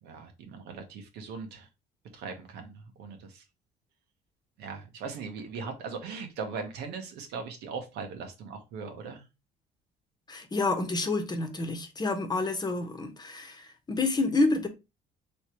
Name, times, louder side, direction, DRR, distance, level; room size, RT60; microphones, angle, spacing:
voice 1, 0.0-1.7 2.1-3.4 4.6-9.2, right 5 dB, 85° right, 1.1 m, -39 dB
voice 2, 10.3-14.7, left 3 dB, 25° left, 1.0 m, -28 dB
3.3 x 3.1 x 4.3 m
cardioid pair, 110°, 17 cm